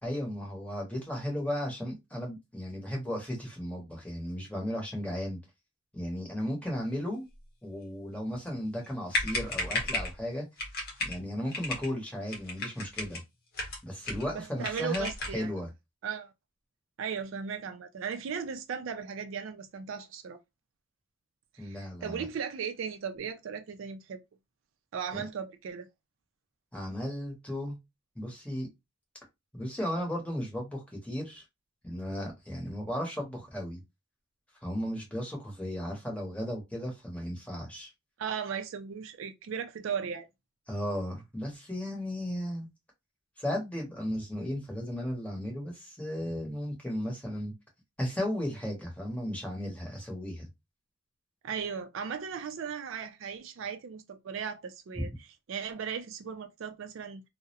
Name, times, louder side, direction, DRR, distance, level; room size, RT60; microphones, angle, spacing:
voice 1, 0.0-5.4 5.9-7.3 7.6-10.4 11.0-13.2 13.8-15.7 21.6-22.2 25.1-25.3 26.7-27.8 28.1-28.7 29.5-31.4 31.8-33.8 34.6-37.9 40.7-42.7 43.4-47.5 48.0-50.5 55.0-55.1, equal, 5° left, 0.8 m, -35 dB
sound 1, 8.8-8.9 9.1-10.2 10.6-11.2 11.5-11.9 12.3-13.2 13.5-14.3 14.6-15.4, left 2 dB, 45° left, 0.8 m, -34 dB
voice 2, 14.3-15.5 16.0-16.3 17.0-20.4 21.5-24.2 24.9-25.9 38.2-40.3 51.4-57.2, right 6 dB, 65° right, 0.3 m, -37 dB
2.3 x 2.0 x 2.7 m
head